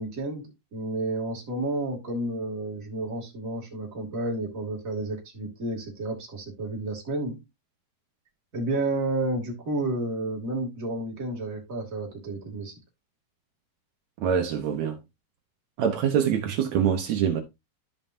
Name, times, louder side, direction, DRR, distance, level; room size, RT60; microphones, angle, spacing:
voice 1, 0.0-7.4 8.5-12.7, right 2 dB, 25° right, 2.4 m, -31 dB
voice 2, 14.2-15.0 15.8-17.4, right 8 dB, 85° right, 1.5 m, -24 dB
13.5 x 5.4 x 2.7 m
omnidirectional pair, 4.6 m